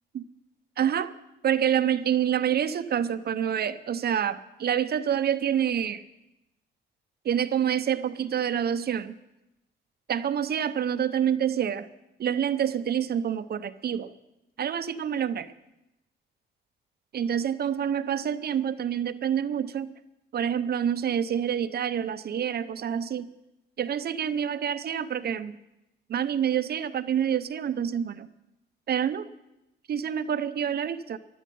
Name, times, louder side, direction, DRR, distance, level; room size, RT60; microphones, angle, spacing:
voice 1, 0.8-1.2 1.4-6.0 7.2-9.2 10.1-11.9 12.2-14.1 14.6-15.5 17.1-19.9 20.3-23.3 23.8-25.6 26.1-28.3 28.9-29.3 29.9-31.2, right 9 dB, 55° right, 13 dB, 0.7 m, -27 dB
15.0 x 12.0 x 5.4 m, 0.93 s
cardioid pair, 90°, 20 cm